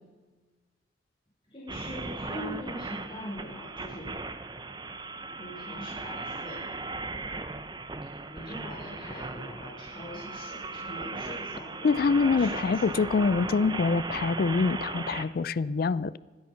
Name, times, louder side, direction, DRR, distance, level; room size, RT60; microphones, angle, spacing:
voice 1, 1.4-4.1 5.4-6.7 8.3-13.2, left 1 dB, 30° left, -7 dB, 5.1 m, -42 dB
sound 1, 1.7-15.3, right 3 dB, 25° right, 0.7 m, -37 dB
voice 2, 11.8-16.2, left 4 dB, 55° left, 18 dB, 0.4 m, -25 dB
24.5 x 8.7 x 5.9 m, 1.3 s
head